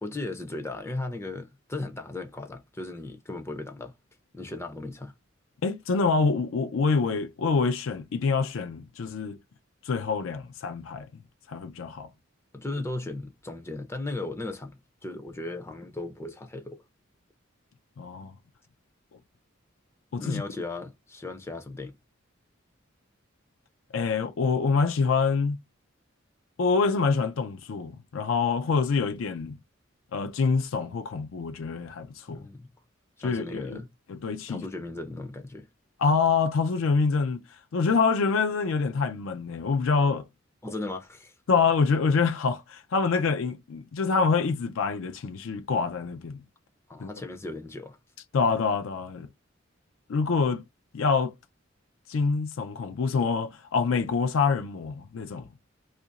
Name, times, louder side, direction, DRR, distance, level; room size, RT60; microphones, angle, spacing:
voice 1, 0.0-3.9 4.3-5.1 12.5-16.8 20.2-21.9 32.3-32.7 33.2-33.9 34.5-35.7 40.6-41.3 46.9-48.0, left 2 dB, 15° left, 0.4 m, -36 dB
voice 2, 5.6-9.4 9.8-11.1 11.5-12.1 18.0-18.3 20.1-20.4 23.9-25.6 26.6-29.6 30.1-32.5 33.2-33.8 34.1-34.6 36.0-37.4 37.7-40.2 41.5-46.4 47.0-47.1 48.3-49.3 50.1-50.6 50.9-51.3 52.1-55.5, left 4 dB, 80° left, 0.4 m, -26 dB
2.8 x 2.5 x 3.9 m
head